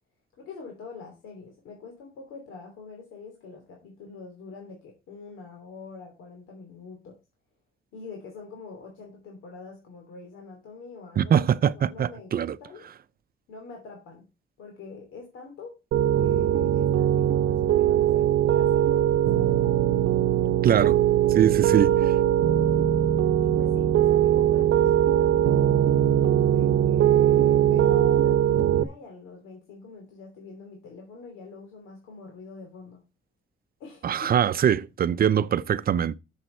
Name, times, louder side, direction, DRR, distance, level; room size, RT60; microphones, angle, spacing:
voice 1, 0.4-7.2 7.9-12.9 13.5-14.2 14.6-15.8 16.2-19.6 21.8-22.3 23.4-26.1 26.5-33.0 33.8-34.5, left 4 dB, 90° left, 3.0 m, -44 dB
voice 2, 11.2-12.6 20.6-21.0 21.3-21.9 34.0-36.2, right 9 dB, 50° right, 0.6 m, -22 dB
Piano, 15.9-28.8, right 11 dB, 80° right, 0.8 m, -21 dB
11.0 x 7.3 x 4.4 m
cardioid pair, 90°, 20 cm